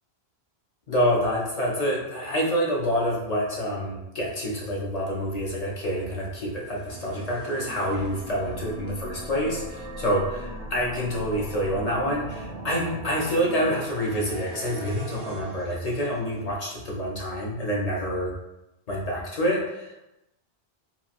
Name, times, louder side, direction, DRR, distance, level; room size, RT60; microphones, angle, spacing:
voice 1, 0.9-18.3 18.9-20.0, equal, 50° left, -3 dB, 0.5 m, -27 dB
sound 1, 6.4-16.7, right 1 dB, 55° right, 0.5 m, -39 dB
2.9 x 2.3 x 2.4 m, 0.94 s
omnidirectional pair, 1.1 m